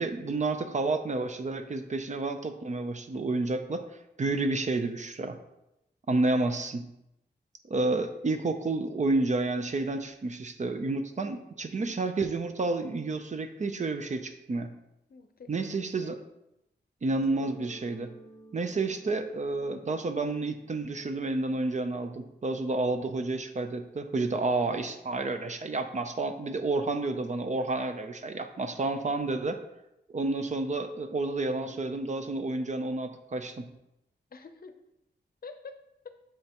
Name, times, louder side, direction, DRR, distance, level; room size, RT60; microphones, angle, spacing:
voice 1, 0.0-3.9 4.2-5.4 6.1-6.9 7.7-14.7 15.5-16.2 17.0-18.1 18.5-29.6 30.1-33.7, right 3 dB, 40° right, 7 dB, 0.6 m, -30 dB
voice 2, 15.1-16.2 34.3-34.7 35.4-35.8 36.0-36.2, left 4 dB, 55° left, 8 dB, 0.6 m, -47 dB
Mallet percussion, 17.2-22.8, right 1 dB, 10° left, 0.9 m, -54 dB
7.0 x 5.4 x 3.0 m, 0.86 s
wide cardioid pair, 100°, 18 cm